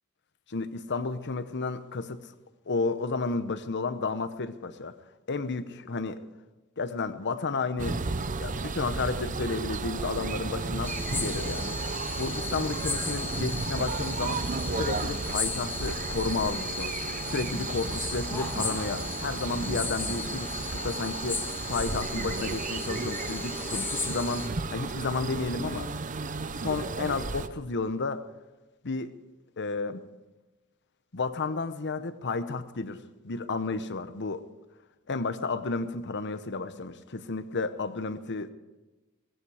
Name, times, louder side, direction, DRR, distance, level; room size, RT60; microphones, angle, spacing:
voice 1, 0.5-2.3 2.7-5.0 5.3-6.2 6.8-8.0 8.4-11.8 12.2-14.4 14.8-17.0 17.3-25.9 26.6-28.2 28.8-29.1 29.6-30.0 31.1-34.4 35.1-38.5, left 3 dB, 55° left, 11 dB, 0.9 m, -32 dB
sound 1, 7.8-27.5, right 3 dB, 35° right, 0.7 m, -33 dB
sound 2, 10.8-24.5, left 3 dB, 10° left, 1.7 m, -36 dB
17.5 x 15.0 x 4.9 m, 1.1 s
head